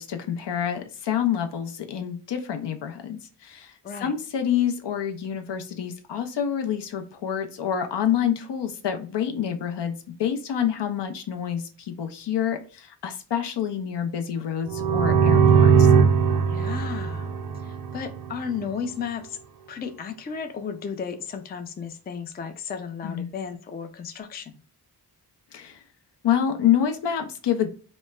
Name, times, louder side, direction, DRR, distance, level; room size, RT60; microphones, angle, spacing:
voice 1, 0.0-3.7 4.0-15.9 23.0-23.3 25.5-25.8 26.2-27.7, left 9 dB, 75° left, 0.6 m, -27 dB
sound 1, 14.7-18.4, right 6 dB, 55° right, 0.5 m, -19 dB
voice 2, 16.4-17.3 17.6-19.4 19.7-24.6, left 6 dB, 25° left, 0.3 m, -34 dB
3.0 x 2.1 x 2.2 m
wide cardioid pair, 90°, 42 cm